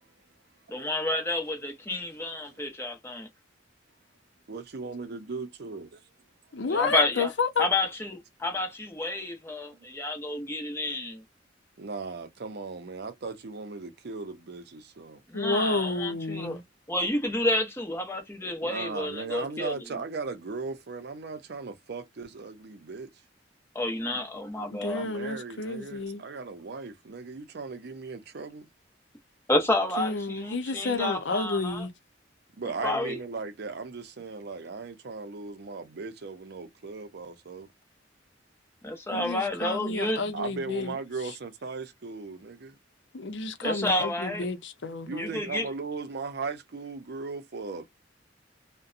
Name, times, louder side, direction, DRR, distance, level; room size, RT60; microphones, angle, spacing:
voice 1, 0.7-3.3 6.7-7.3 7.6-11.2 15.3-16.6 16.9-19.9 23.7-25.1 29.5-31.8 32.8-33.2 38.8-40.2 43.6-44.5 45.2-45.7, left 2 dB, 15° left, 0.8 m, -30 dB
voice 2, 4.5-6.0 9.7-9.8 11.8-15.2 18.6-23.1 24.9-28.7 32.6-37.7 40.3-42.7 45.0-47.9, right 4 dB, 60° right, 0.6 m, -37 dB
voice 3, 6.5-7.7 15.3-16.6 24.7-26.2 30.0-31.9 39.1-41.0 43.1-45.4, left 3 dB, 70° left, 0.6 m, -31 dB
2.6 x 2.1 x 2.4 m
head